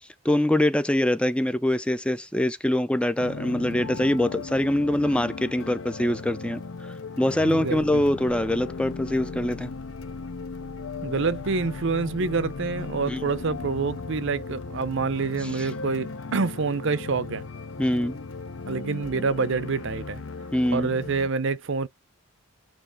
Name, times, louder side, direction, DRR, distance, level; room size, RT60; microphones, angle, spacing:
voice 1, 0.2-6.6 7.2-9.7 13.1-13.2 15.5-15.7 17.8-18.2 20.5-20.9, left 1 dB, 5° left, 0.4 m, -24 dB
sound 1, 3.2-21.3, left 4 dB, 60° left, 0.6 m, -37 dB
voice 2, 7.4-8.0 11.0-17.4 18.7-20.2 20.7-21.9, right 4 dB, 60° right, 0.6 m, -27 dB
8.7 x 3.0 x 4.6 m
head